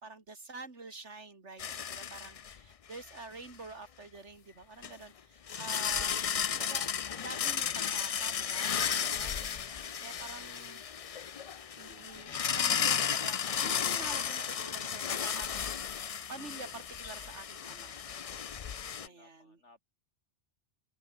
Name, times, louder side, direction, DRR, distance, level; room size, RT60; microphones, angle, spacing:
voice 1, 0.0-6.9 7.2-10.8 11.8-18.0 19.0-19.6, right 3 dB, 80° right, 3.2 m, -48 dB
sound 1, 1.6-2.6 2.9-3.1 4.8-4.9 5.5-19.1, left 7 dB, 45° left, 0.4 m, -34 dB
voice 2, 10.2-10.7 19.0-19.8, left 3 dB, 80° left, 4.1 m, -62 dB
omnidirectional pair, 1.2 m